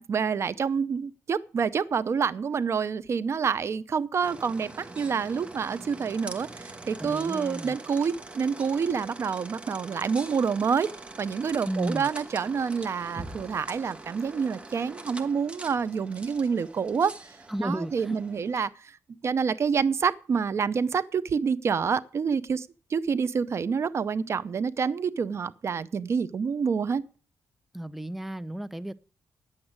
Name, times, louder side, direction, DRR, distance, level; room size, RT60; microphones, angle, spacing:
voice 1, 0.0-10.9 11.2-17.3 17.6-18.9 19.2-27.0, right 6 dB, 50° right, 0.6 m, -27 dB
sound 1, 4.2-18.6, right 2 dB, 20° right, 1.3 m, -43 dB
voice 2, 7.0-7.8 11.7-12.1 17.5-18.2 18.5-18.7 27.7-28.9, right 1 dB, 5° right, 0.5 m, -33 dB
9.9 x 8.1 x 8.8 m
cardioid pair, 100°, 6 cm